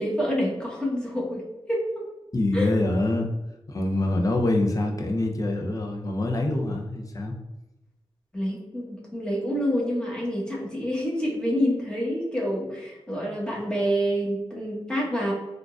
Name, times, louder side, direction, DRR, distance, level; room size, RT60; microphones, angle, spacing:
voice 1, 0.0-1.4 1.7-2.0 2.5-2.7 8.3-15.3, equal, 10° left, -4 dB, 1.1 m, -27 dB
voice 2, 2.3-3.3 3.7-7.3, left 2 dB, 35° left, 1 dB, 0.5 m, -25 dB
3.6 x 2.4 x 2.4 m, 1.0 s
cardioid pair, 50°, 10 cm